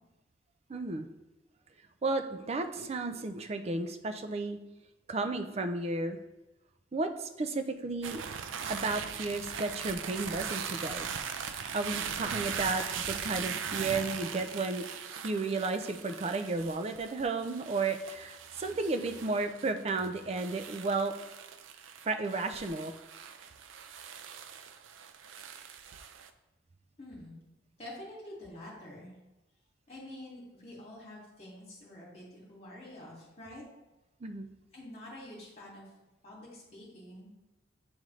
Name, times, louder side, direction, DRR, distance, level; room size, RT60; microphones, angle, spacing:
voice 1, 0.7-1.1 2.0-4.6 5.1-6.2 6.9-8.2 8.7-11.1 11.5-21.1 22.1-22.9 34.2-34.5, right 3 dB, 35° right, 8 dB, 0.4 m, -33 dB
sound 1, 8.0-26.3, right 7 dB, 90° right, 0.4 m, -40 dB
voice 2, 27.0-27.4 27.8-29.1 29.9-33.6 34.7-35.9 36.2-37.4, left 1 dB, 35° left, -4 dB, 2.2 m, -47 dB
8.6 x 3.8 x 3.2 m, 1.0 s
head